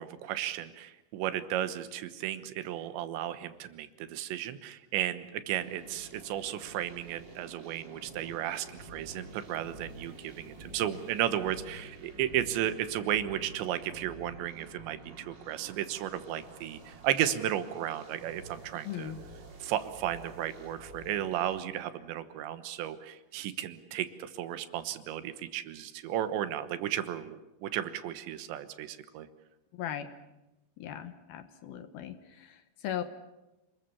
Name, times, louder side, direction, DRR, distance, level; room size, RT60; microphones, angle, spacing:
voice 1, 0.0-19.1 19.6-29.3, right 11 dB, 80° right, 11 dB, 3.4 m, -34 dB
sound 1, 5.6-21.6, right 2 dB, 35° right, 2.2 m, -49 dB
voice 2, 18.8-19.2 29.7-30.1 30.8-33.0, left 10 dB, 70° left, 10 dB, 2.7 m, -38 dB
29.0 x 21.0 x 7.1 m, 0.98 s
omnidirectional pair, 5.1 m